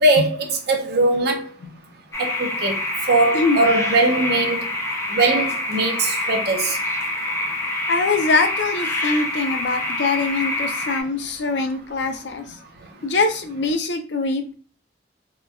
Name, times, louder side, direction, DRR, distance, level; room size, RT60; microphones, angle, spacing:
voice 1, 0.0-1.4 2.2-2.7 3.1-4.7 5.1-6.8, right 2 dB, 60° right, 0.6 m, -20 dB
sound 1, 2.1-11.0, left 1 dB, 15° left, 0.3 m, -26 dB
voice 2, 7.9-12.4 13.0-14.5, left 3 dB, 75° left, 0.5 m, -23 dB
2.9 x 2.2 x 2.4 m
head